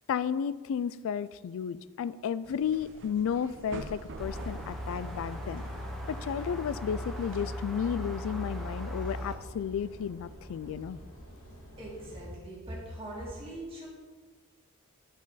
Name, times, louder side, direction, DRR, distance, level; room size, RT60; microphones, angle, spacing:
voice 1, 0.1-5.6 6.1-11.0, left 7 dB, 60° left, 17 dB, 0.3 m, -33 dB
sound 1, 2.4-7.4, right 2 dB, 55° right, 0.6 m, -47 dB
sound 2, 4.0-12.3, equal, 90° left, 2.2 m, -50 dB
sound 3, 4.2-9.4, equal, ahead, 0.8 m, -38 dB
voice 2, 11.8-13.9, right 1 dB, 25° right, -5 dB, 2.3 m, -41 dB
10.5 x 5.0 x 4.0 m, 1.4 s
head